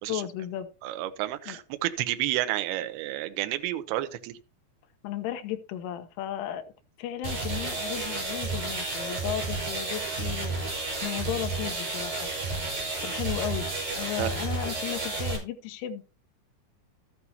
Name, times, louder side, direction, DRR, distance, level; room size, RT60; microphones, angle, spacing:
voice 1, 0.1-0.7 1.5-1.6 5.0-6.6 7.0-10.5 11.0-12.3 13.0-13.7 14.0-16.0, left 11 dB, 80° left, 6 dB, 3.3 m, -34 dB
voice 2, 0.8-4.4 14.2-14.3, right 14 dB, 85° right, 9 dB, 2.2 m, -30 dB
sound 1, 7.2-15.4, right 3 dB, 40° right, 6.4 m, -31 dB
14.0 x 8.4 x 2.9 m, 0.32 s
omnidirectional pair, 5.8 m